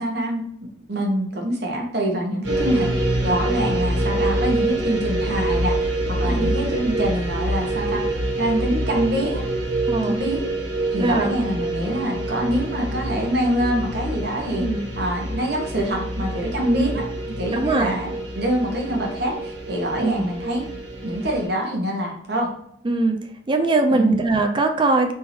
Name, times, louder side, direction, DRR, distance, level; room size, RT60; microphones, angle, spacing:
voice 1, 0.0-2.9 3.2-8.1 8.4-9.4 10.0-10.5 10.9-14.7 15.0-17.1 17.4-20.7 21.0-22.5 23.9-24.2, right 1 dB, 60° right, 1 dB, 1.2 m, -25 dB
sound 1, 2.4-21.5, right 1 dB, 85° right, 1.8 m, -26 dB
voice 2, 9.8-10.2 11.0-11.3 14.6-14.9 16.8-16.9 17.5-18.0 20.0-20.3 22.8-25.1, right 2 dB, 25° right, 5 dB, 0.4 m, -21 dB
4.2 x 3.7 x 2.8 m, 0.71 s
head